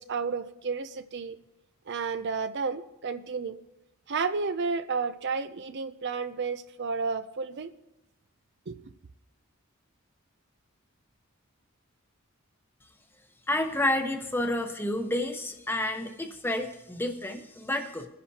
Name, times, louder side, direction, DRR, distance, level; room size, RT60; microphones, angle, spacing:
voice 1, 0.0-1.4 1.9-3.6 4.1-7.7 8.7-8.8, right 5 dB, 55° right, 0.5 m, -31 dB
voice 2, 13.5-18.1, left 1 dB, 10° left, 1.0 m, -30 dB
21.5 x 10.0 x 2.8 m
head